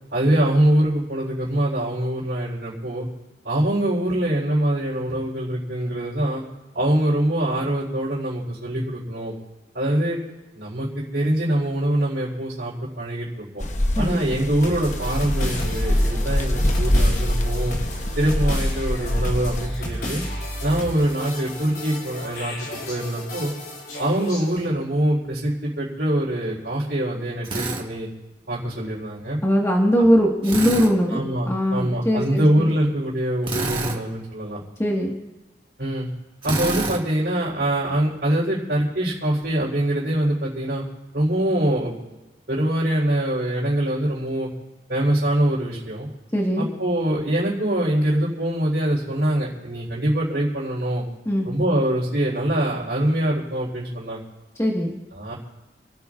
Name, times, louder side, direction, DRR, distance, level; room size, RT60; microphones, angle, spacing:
voice 1, 0.1-3.1 3.4-6.4 6.7-9.3 9.7-10.2 10.6-13.6 14.0-17.8 18.2-20.2 20.6-22.6 22.9-23.5 24.0-28.1 28.5-29.4 31.1-34.6 35.8-36.1 36.4-40.8 41.1-41.9 42.5-44.5 44.9-46.1 46.6-51.0 51.4-54.2 55.1-55.3, right 1 dB, 65° right, -8 dB, 4.1 m, -24 dB
sound 1, 13.6-19.7, left 1 dB, 40° left, 1.0 m, -24 dB
sound 2, 14.6-24.7, left 1 dB, 60° left, 6.4 m, -31 dB
Drill, 27.4-27.8 30.4-30.9 33.4-34.0 36.4-37.0, right 3 dB, 30° right, 1.8 m, -27 dB
voice 2, 29.4-31.2 31.5-32.7 34.8-35.1 46.3-46.7 51.3-51.5 54.6-54.9, equal, 15° left, -2 dB, 1.8 m, -20 dB
29.5 x 14.0 x 2.6 m, 1.1 s
head